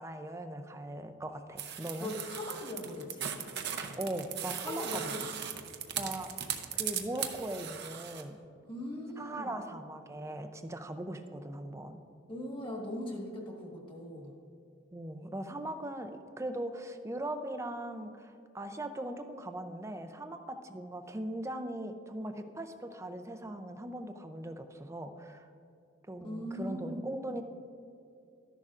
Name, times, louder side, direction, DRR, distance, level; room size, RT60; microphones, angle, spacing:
voice 1, 0.0-2.1 4.0-5.6 6.0-8.4 9.2-12.0 14.9-25.5 26.1-27.4, right 1 dB, 15° right, 7 dB, 0.4 m, -40 dB
sound 1, 1.6-8.2, right 9 dB, 55° right, 0.7 m, -38 dB
voice 2, 2.0-3.3 4.6-5.2 8.7-9.5 12.3-14.3 26.2-27.0, left 1 dB, 25° left, -1 dB, 1.4 m, -40 dB
13.0 x 10.5 x 2.5 m, 2.5 s
head